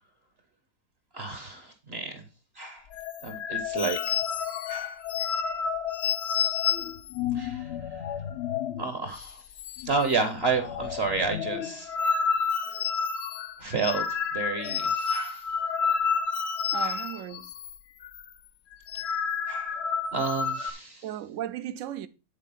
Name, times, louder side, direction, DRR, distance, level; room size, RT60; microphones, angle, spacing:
voice 1, 1.1-2.2 2.5-2.9 3.2-4.2 4.7-5.0 7.3-8.0 8.8-9.5 9.8-12.0 13.6-14.0 14.3-15.5 16.8-17.0 19.5-19.8 20.1-21.0, right 4 dB, 45° right, 1.1 m, -31 dB
sound 1, 2.9-8.9 9.2-9.3 9.6-10.1 10.4-17.8 18.0-18.3 18.7-20.7, left 6 dB, 55° left, 0.8 m, -30 dB
voice 2, 16.7-17.5 21.0-22.1, right 12 dB, 60° right, 0.9 m, -35 dB
10.0 x 4.3 x 5.6 m
omnidirectional pair, 1.7 m